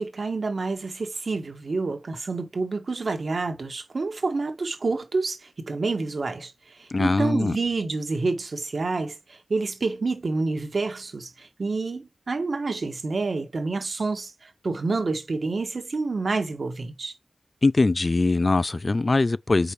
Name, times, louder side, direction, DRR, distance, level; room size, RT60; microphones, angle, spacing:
voice 1, 0.0-6.5 6.8-17.1, right 3 dB, 65° right, 1.3 m, -28 dB
voice 2, 6.9-7.6 17.6-19.7, left 3 dB, 50° left, 0.3 m, -22 dB
5.2 x 4.2 x 4.6 m
cardioid pair, 55°, 0 cm